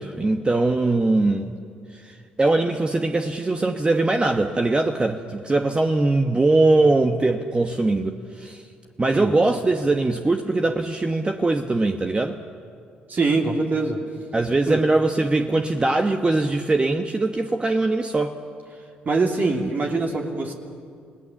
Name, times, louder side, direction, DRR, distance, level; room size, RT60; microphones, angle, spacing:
voice 1, 0.0-1.5 1.9-8.6 9.0-12.4 14.3-18.4, right 2 dB, 25° right, 5 dB, 1.2 m, -21 dB
voice 2, 13.1-14.0 14.7-14.8 19.0-20.5, right 3 dB, 45° right, 1 dB, 2.7 m, -23 dB
27.0 x 18.0 x 7.1 m, 2.3 s
hypercardioid pair, 55°, 4 cm